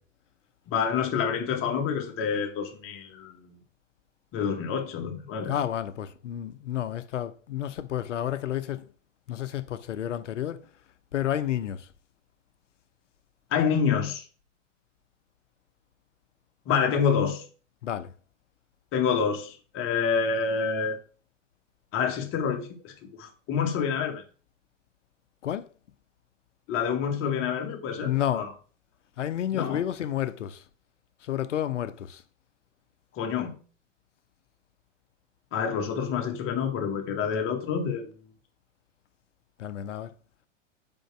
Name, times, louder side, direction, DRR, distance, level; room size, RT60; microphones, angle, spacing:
voice 1, 0.7-3.6 4.3-5.6 13.5-14.2 16.7-17.4 18.9-21.0 21.9-22.9 23.2-24.2 26.7-28.5 29.5-29.8 33.2-33.6 35.5-38.1, left 6 dB, 35° left, 1.9 m, -27 dB
voice 2, 5.5-8.8 9.3-10.7 11.1-11.9 17.8-18.1 25.4-25.7 28.0-28.5 29.2-30.6 31.2-32.2 37.1-37.2 39.6-40.1, left 11 dB, 70° left, 0.9 m, -30 dB
5.2 x 4.8 x 6.2 m
figure-of-eight pair, 100°, 38 cm